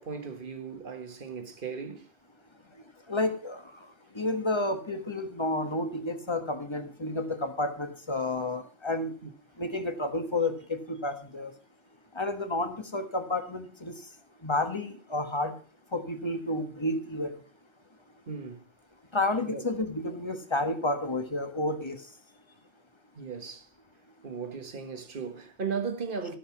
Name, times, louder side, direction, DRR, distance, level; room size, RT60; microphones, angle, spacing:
voice 1, 0.0-2.1 9.2-9.3 18.3-18.7 19.4-19.6 23.1-23.7 24.2-26.4, right 5 dB, 50° right, 1.6 m, -36 dB
voice 2, 3.1-3.8 4.1-9.1 9.6-11.5 12.1-14.0 14.4-15.5 15.9-17.3 19.1-22.0, left 2 dB, 25° left, 1.3 m, -31 dB
14.0 x 6.6 x 6.0 m
omnidirectional pair, 1.2 m